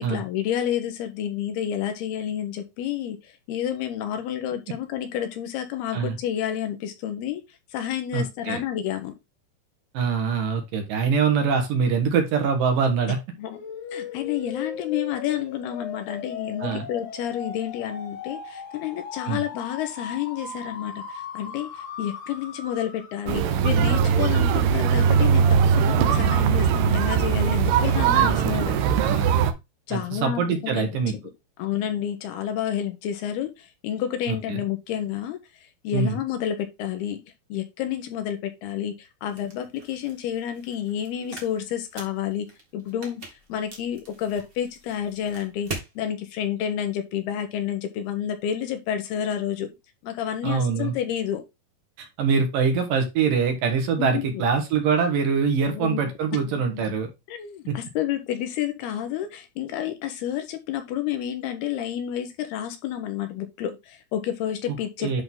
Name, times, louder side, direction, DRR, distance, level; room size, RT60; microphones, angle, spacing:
voice 1, 0.0-3.2 3.5-7.4 7.7-9.1 13.3-13.6 13.9-21.7 22.0-28.8 29.9-30.9 31.6-35.4 35.8-37.2 37.5-42.5 42.7-49.7 50.0-51.4 54.0-54.4 55.7-56.1 56.7-56.8 57.3-65.2, left 10 dB, 80° left, 7 dB, 3.1 m, -30 dB
voice 2, 8.1-8.6 9.9-13.2 16.6-16.9 19.3-19.4 28.2-29.3 29.9-31.1 34.3-34.6 35.9-36.2 50.4-50.9 52.0-57.1 57.7-57.8 65.0-65.2, right 6 dB, 65° right, 5 dB, 2.8 m, -24 dB
sound 1, 13.5-23.4, left 6 dB, 55° left, 2.8 m, -38 dB
sound 2, 23.3-29.5, right 7 dB, 80° right, 2.8 m, -20 dB
sound 3, 39.3-45.9, right 2 dB, 35° right, 0.9 m, -42 dB
10.5 x 3.9 x 3.7 m, 0.22 s
omnidirectional pair, 4.6 m